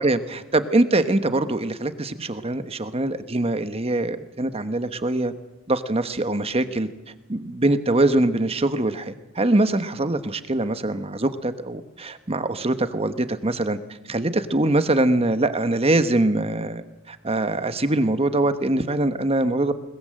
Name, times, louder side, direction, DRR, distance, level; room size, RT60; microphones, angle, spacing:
voice 1, 0.0-5.3 5.7-6.9 7.3-13.8 14.1-19.7, right 2 dB, 30° right, 10 dB, 1.2 m, -23 dB
21.5 x 20.0 x 7.7 m, 1.0 s
head